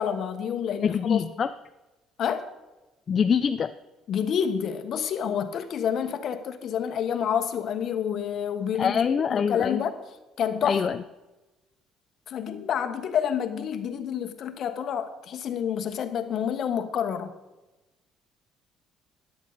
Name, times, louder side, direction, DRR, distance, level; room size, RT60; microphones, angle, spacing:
voice 1, 0.0-1.2 2.2-2.5 4.1-10.0 10.4-10.8 12.3-17.3, left 8 dB, 55° left, 8 dB, 1.2 m, -28 dB
voice 2, 0.8-1.5 3.1-3.7 8.8-9.8 10.6-11.0, left 7 dB, 40° left, 10 dB, 0.4 m, -24 dB
13.5 x 10.0 x 4.0 m, 1.1 s
cardioid pair, 100°, 0 cm